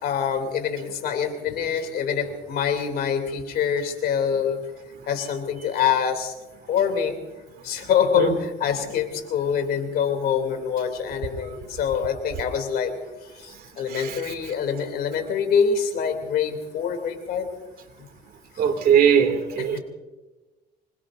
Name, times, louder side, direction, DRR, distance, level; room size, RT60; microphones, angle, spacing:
voice 1, 0.0-4.6 5.1-6.3 6.7-7.2 7.6-13.0 13.4-17.5 18.0-18.1 19.6-19.8, left 7 dB, 65° left, 6 dB, 2.9 m, -25 dB
voice 2, 18.6-19.8, right 8 dB, 60° right, 6 dB, 2.4 m, -19 dB
25.5 x 21.0 x 2.6 m, 1.2 s
cardioid pair, 110°, 17 cm